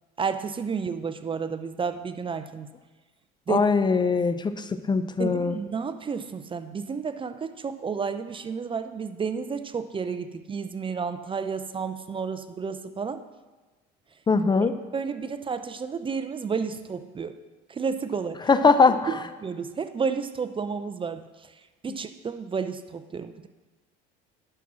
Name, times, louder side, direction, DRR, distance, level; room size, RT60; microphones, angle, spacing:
voice 1, 0.2-2.7 3.5-3.6 5.2-13.2 14.9-17.4 17.7-18.5 18.9-21.5 21.8-23.5, right 5 dB, 25° right, 11 dB, 0.6 m, -31 dB
voice 2, 3.5-5.5 14.3-14.7 18.5-19.1, left 4 dB, 20° left, 11 dB, 0.6 m, -21 dB
11.0 x 6.0 x 6.2 m, 1.3 s
supercardioid pair, 100°, 21 cm